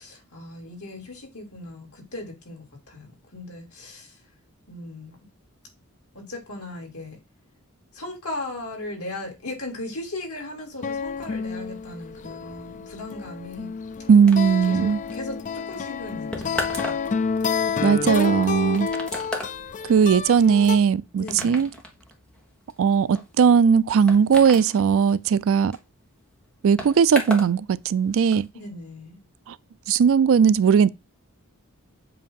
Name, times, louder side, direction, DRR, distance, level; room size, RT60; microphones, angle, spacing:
voice 1, 0.0-4.2 4.7-5.2 6.1-7.2 7.9-13.7 14.7-15.4 15.7-17.0 21.2-21.6 28.5-29.2, left 2 dB, 80° left, 2.8 m, -37 dB
sound 1, 10.8-20.8, left 5 dB, 35° left, 0.4 m, -29 dB
voice 2, 14.1-15.0 17.8-18.9 19.9-21.7 22.8-25.8 26.6-28.5 29.5-29.6 29.9-30.9, right 6 dB, 65° right, 0.4 m, -18 dB
sound 2, 14.3-27.6 27.8-28.5, left 1 dB, 5° left, 1.2 m, -37 dB
7.7 x 2.8 x 5.3 m
head